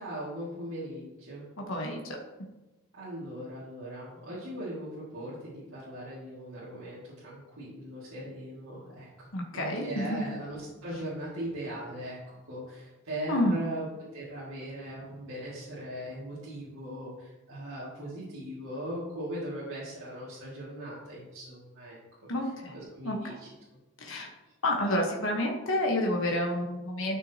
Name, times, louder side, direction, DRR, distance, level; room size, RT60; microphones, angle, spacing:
voice 1, 0.0-1.4 2.9-9.3 9.5-12.2 12.5-13.9 14.1-22.3 22.7-23.5, right 1 dB, 70° right, -9 dB, 2.3 m, -39 dB
voice 2, 9.3-10.3 13.3-13.6 22.3-22.7 23.0-23.4 24.0-24.3 24.6-27.2, left 1 dB, 65° left, 0 dB, 1.2 m, -29 dB
12.5 x 6.1 x 2.9 m, 1.1 s
head